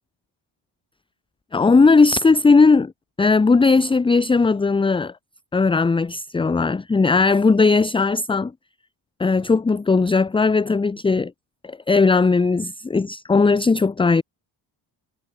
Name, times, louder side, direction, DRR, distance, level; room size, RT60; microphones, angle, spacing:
voice 1, 1.5-2.9 3.2-5.1 5.5-8.5 9.2-11.3 11.6-14.2, left 4 dB, 10° left, 0.6 m, -17 dB
cardioid pair, 175°, 47 cm